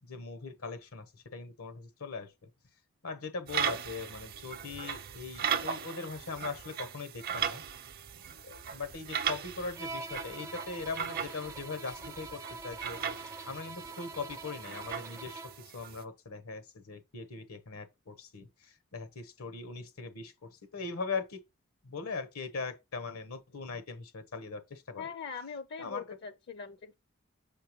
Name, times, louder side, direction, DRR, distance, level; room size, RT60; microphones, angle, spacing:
voice 1, 0.0-2.5 3.0-7.6 8.4-21.4 21.8-25.1 25.8-26.0, left 4 dB, 85° left, 1.1 m, -40 dB
sound 1, 3.5-16.0, right 8 dB, 45° right, 0.6 m, -38 dB
Bowed string instrument, 9.8-15.7, right 3 dB, 15° right, 0.4 m, -45 dB
voice 2, 25.0-26.9, left 5 dB, 50° left, 0.5 m, -42 dB
6.6 x 5.7 x 3.1 m
head